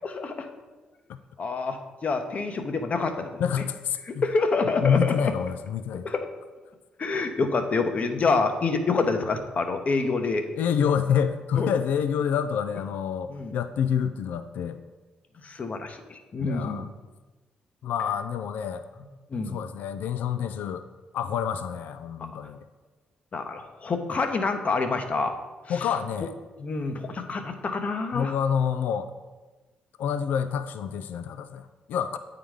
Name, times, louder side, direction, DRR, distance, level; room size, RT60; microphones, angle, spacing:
voice 1, 0.0-0.5 1.4-3.6 4.1-5.3 5.9-6.3 7.0-10.4 11.5-11.7 13.3-13.6 15.4-16.9 19.3-19.6 23.3-25.3 25.7-25.9 26.6-28.4, left 4 dB, 50° left, 6 dB, 0.9 m, -27 dB
voice 2, 3.4-4.2 4.8-6.1 10.6-14.8 16.4-16.9 17.8-18.9 19.5-20.8 21.1-22.6 25.7-26.3 28.1-29.1 30.0-32.2, left 8 dB, 70° left, 11 dB, 0.3 m, -27 dB
8.7 x 3.9 x 4.8 m, 1.2 s
hypercardioid pair, 50°, 3 cm